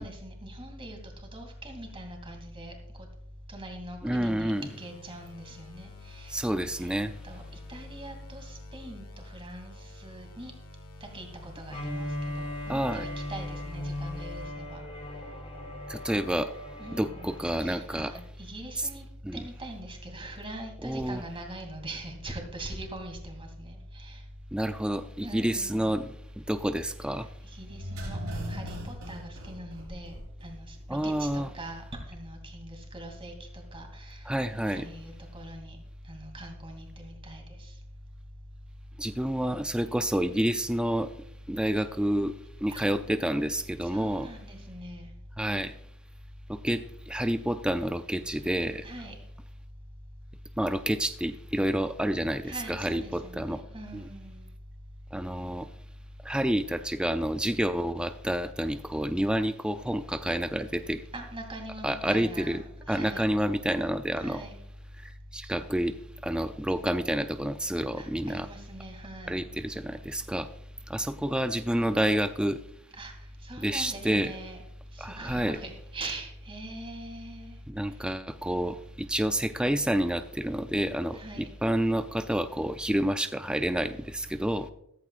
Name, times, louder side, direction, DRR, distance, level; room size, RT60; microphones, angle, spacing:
voice 1, 0.0-2.7 3.5-6.5 6.8-7.0 7.2-7.4 7.7-10.5 11.0-14.8 16.8-19.0 19.3-24.2 25.2-26.0 27.4-30.1 30.4-34.2 34.7-35.8 36.1-37.7 42.7-42.9 43.8-45.1 48.8-49.1 52.4-54.5 61.1-63.4 64.2-64.5 68.0-69.4 73.0-73.1 73.4-74.6 74.9-77.6 81.1-81.5, right 1 dB, 25° right, 2 dB, 2.7 m, -42 dB
voice 2, 4.0-4.7 6.3-7.1 12.7-13.0 15.9-16.5 17.0-18.1 18.8-18.9 19.2-19.4 20.8-21.2 24.5-27.3 30.9-31.5 34.3-34.9 39.0-41.1 41.5-44.3 45.4-45.7 46.5-48.8 50.6-53.6 53.9-54.0 55.1-55.7 56.2-61.0 61.8-62.6 62.9-64.4 65.0-66.0 66.2-68.5 69.3-70.5 70.9-72.6 73.6-74.3 75.0-75.6 77.7-84.7, right 1 dB, 5° right, 9 dB, 0.4 m, -29 dB
sound 1, 4.5-14.5, left 2 dB, 85° left, 1.7 m, -48 dB
Bowed string instrument, 11.7-17.7, left 1 dB, 30° left, 2.9 m, -38 dB
sound 2, 27.7-30.5 30.8-30.9, equal, 70° right, 4.4 m, -38 dB
14.5 x 14.5 x 2.5 m, 0.78 s
head